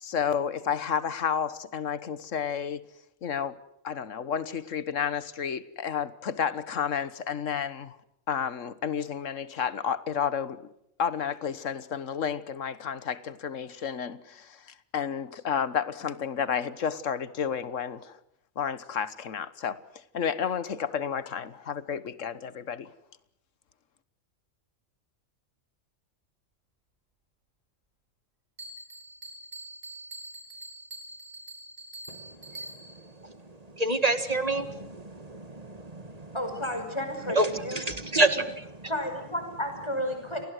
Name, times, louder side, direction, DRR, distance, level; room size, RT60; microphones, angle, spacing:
voice 1, 0.0-2.8 3.2-3.6 3.8-8.0 8.3-10.7 11.0-18.2 18.6-19.8 20.1-22.9, left 7 dB, 70° left, 16 dB, 1.6 m, -31 dB
Bell, 28.6-33.1, right 2 dB, 70° right, 4.9 m, -44 dB
voice 2, 32.1-36.4 37.3-38.9, right 2 dB, 30° right, 11 dB, 1.9 m, -29 dB
voice 3, 36.3-37.9 38.9-40.4, left 1 dB, 20° left, 6 dB, 5.6 m, -32 dB
28.5 x 20.5 x 7.9 m, 0.77 s
omnidirectional pair, 1.3 m